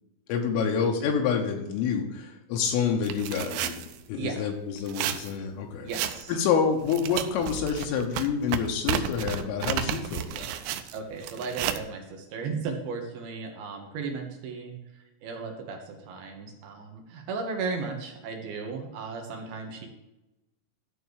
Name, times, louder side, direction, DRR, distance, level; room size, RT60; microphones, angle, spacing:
voice 1, 0.3-5.9 6.3-10.5, left 6 dB, 80° left, 1 dB, 3.7 m, -28 dB
sound 1, 3.0-4.0 4.8-5.3 5.9-6.3 6.8-11.8, right 11 dB, 90° right, 3.5 m, -32 dB
voice 2, 4.2-4.5 5.8-6.4 10.9-14.8 15.2-19.9, right 4 dB, 65° right, 3 dB, 2.6 m, -35 dB
13.5 x 4.5 x 6.6 m, 0.98 s
omnidirectional pair, 5.9 m